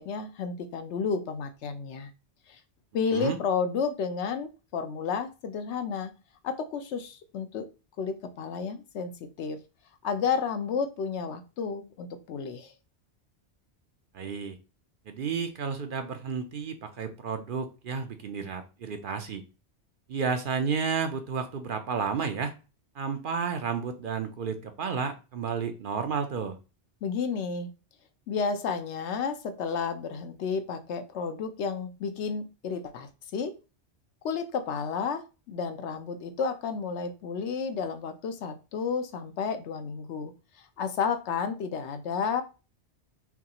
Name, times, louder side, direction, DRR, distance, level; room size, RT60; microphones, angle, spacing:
voice 1, 0.0-2.1 2.5-2.6 2.9-6.1 6.4-7.7 8.0-9.6 10.0-12.7 27.0-27.7 28.3-33.5 34.2-40.3 40.6-42.4, left 5 dB, 75° left, 8 dB, 0.9 m, -31 dB
voice 2, 14.1-14.6 15.1-19.4 20.1-22.5 22.9-26.6, right 6 dB, 60° right, 7 dB, 0.6 m, -31 dB
5.8 x 2.4 x 2.9 m, 0.31 s
omnidirectional pair, 1.2 m